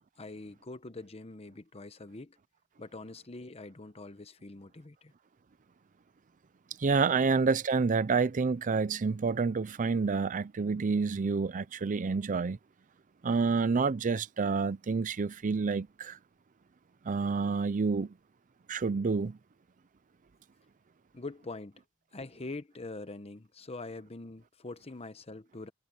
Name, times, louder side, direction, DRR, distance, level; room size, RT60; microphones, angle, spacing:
voice 1, 0.2-2.4 2.8-5.1 7.2-7.3 21.1-21.8 22.1-25.7, left 2 dB, 30° left, 0.9 m, -44 dB
voice 2, 6.8-12.6 13.2-16.2 17.1-18.1 18.7-19.4, right 4 dB, 40° right, 0.5 m, -28 dB
head